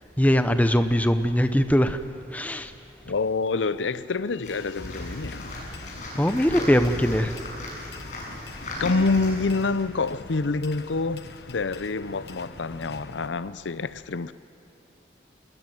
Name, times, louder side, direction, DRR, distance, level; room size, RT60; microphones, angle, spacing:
voice 1, 0.2-2.0 2.3-2.7 6.2-7.4, equal, 10° left, 0.8 m, -21 dB
voice 2, 3.1-5.5 8.8-14.3, left 3 dB, 80° left, 0.6 m, -27 dB
sound 1, 4.4-9.7, left 1 dB, 40° left, 7.7 m, -37 dB
sound 2, 4.7-13.3, left 3 dB, 60° left, 1.0 m, -43 dB
26.5 x 20.5 x 9.3 m
head